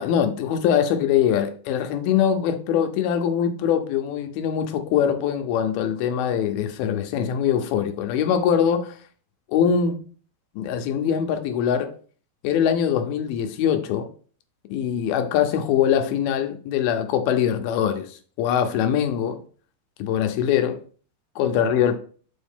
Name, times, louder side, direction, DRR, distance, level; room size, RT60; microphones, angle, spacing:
voice 1, 0.0-9.0 9.5-10.0 10.6-12.0 12.4-14.1 14.7-19.4 20.0-20.8 21.4-22.0, left 8 dB, 75° left, 2.5 m, -22 dB
7.2 x 4.7 x 3.5 m
omnidirectional pair, 4.7 m